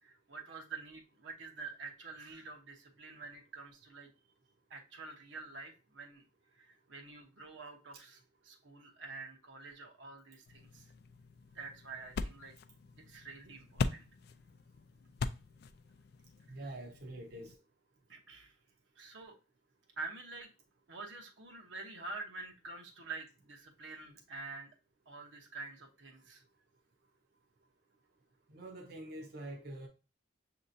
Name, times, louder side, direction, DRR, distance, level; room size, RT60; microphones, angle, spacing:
voice 1, 0.0-4.1 4.7-6.2 6.5-10.9 11.5-12.5 13.1-14.1 18.1-18.6 19.0-19.3 20.0-20.5 20.9-24.7 25.1-26.4, right 3 dB, 85° right, 0.9 m, -47 dB
sound 1, 10.5-17.5, left 4 dB, 60° left, 0.3 m, -42 dB
voice 2, 16.5-17.6 28.5-29.9, right 1 dB, 55° right, 0.7 m, -45 dB
6.5 x 2.9 x 2.6 m
head